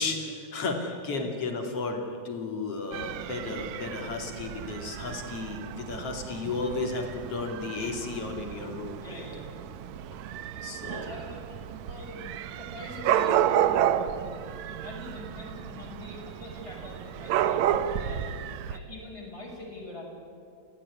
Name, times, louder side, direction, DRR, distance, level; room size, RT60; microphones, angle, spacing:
voice 1, 0.0-9.2 10.6-11.1, left 3 dB, 50° left, 3 dB, 3.6 m, -33 dB
voice 2, 0.7-1.3 9.0-9.6 9.9-10.0 10.5-11.6 11.9-20.0, left 2 dB, 10° left, -3 dB, 6.7 m, -44 dB
Dog / Cat, 2.9-18.8, right 10 dB, 75° right, 2.0 m, -31 dB
28.0 x 16.5 x 9.8 m, 2.5 s
omnidirectional pair, 3.4 m